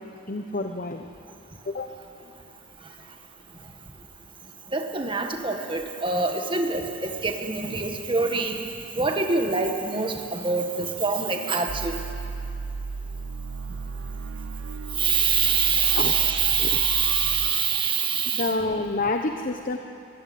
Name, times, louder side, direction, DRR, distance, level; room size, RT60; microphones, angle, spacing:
voice 1, 0.3-1.0 1.7-1.9 15.9-16.2 16.6-16.8 18.3-19.8, left 2 dB, 45° left, 5 dB, 1.0 m, -28 dB
voice 2, 4.7-8.6 9.0-12.0 15.0-18.5, right 5 dB, 25° right, 4 dB, 1.7 m, -25 dB
sound 1, 11.7-18.6, right 4 dB, 75° right, 0.5 m, -35 dB
23.5 x 16.5 x 9.5 m, 2.7 s
head